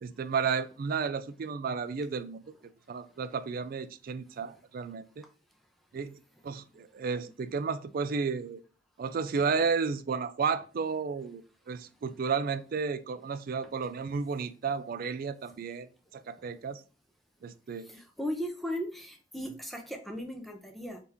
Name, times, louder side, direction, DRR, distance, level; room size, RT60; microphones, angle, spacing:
voice 1, 0.0-2.4 2.9-5.2 5.9-8.6 9.0-11.4 11.7-16.8 17.4-17.9, right 5 dB, 55° right, 0.3 m, -32 dB
voice 2, 17.8-21.0, equal, ahead, 0.6 m, -37 dB
3.4 x 2.9 x 3.5 m
head